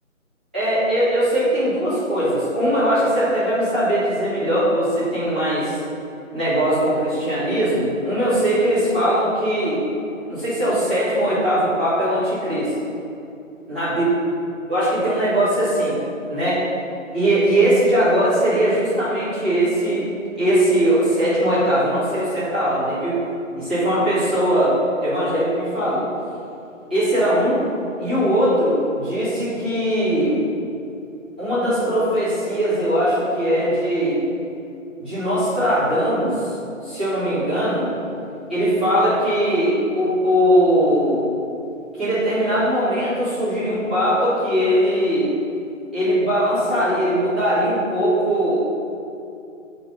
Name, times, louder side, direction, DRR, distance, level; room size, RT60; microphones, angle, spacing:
voice 1, 0.5-5.8 6.3-9.8 10.3-12.7 13.7-14.1 14.7-15.9 16.3-16.6 17.1-20.0 20.4-23.2 23.6-26.1 26.9-27.6 28.0-30.4 31.4-34.2 35.0-36.5 36.8-37.9 38.5-41.3 42.0-45.3 45.9-48.6, equal, 5° right, -16 dB, 1.2 m, -20 dB
9.9 x 4.0 x 5.8 m, 2.7 s
figure-of-eight pair, 160°, 41 cm